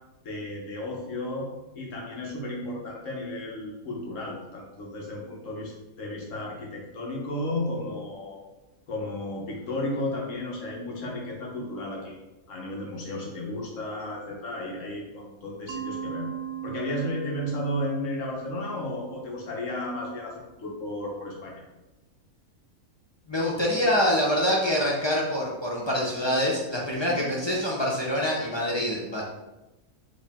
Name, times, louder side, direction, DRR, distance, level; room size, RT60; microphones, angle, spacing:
voice 1, 0.2-1.5 1.7-8.4 8.9-12.2 12.5-16.3 16.6-21.6 27.1-27.2, left 1 dB, 65° left, -2 dB, 1.4 m, -33 dB
Mallet percussion, 15.7-20.5, right 10 dB, 80° right, 1.0 m, -39 dB
voice 2, 23.3-29.2, equal, 35° left, -3 dB, 0.5 m, -25 dB
4.5 x 3.2 x 3.5 m, 1.0 s
omnidirectional pair, 1.4 m